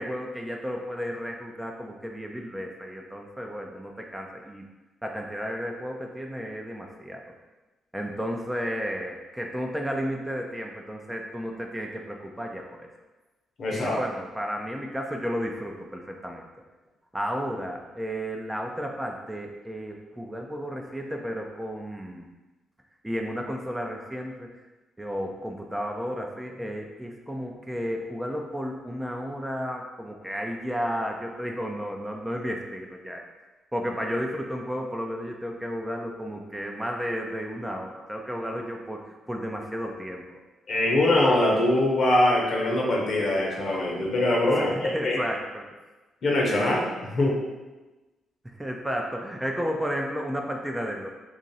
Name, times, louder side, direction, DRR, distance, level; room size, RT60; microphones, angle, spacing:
voice 1, 0.0-4.6 5.0-7.2 7.9-12.9 13.7-16.4 17.1-22.3 23.0-24.5 25.0-33.2 33.7-39.0 39.3-40.2 44.5-45.6 48.4-51.1, equal, 10° right, 1 dB, 0.6 m, -33 dB
voice 2, 13.6-14.0 40.7-45.2 46.2-47.4, left 1 dB, 60° left, -3 dB, 0.9 m, -23 dB
3.0 x 2.5 x 4.0 m, 1.2 s
hypercardioid pair, 45°, 0 cm